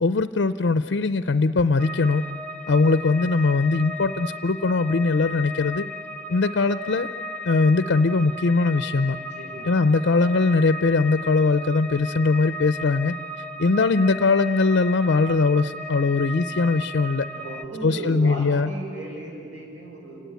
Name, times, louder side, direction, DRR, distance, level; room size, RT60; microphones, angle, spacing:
voice 1, 0.0-2.3 2.7-5.8 6.3-7.1 7.4-9.2 9.6-13.1 13.6-17.3 17.8-18.7, left 3 dB, 65° left, 12 dB, 0.5 m, -21 dB
sound 1, 1.8-17.7, left 1 dB, 5° left, 0.8 m, -35 dB
voice 2, 9.4-10.2 17.4-20.2, right 2 dB, 70° right, -1 dB, 6.8 m, -36 dB
29.5 x 17.5 x 9.3 m, 2.5 s
head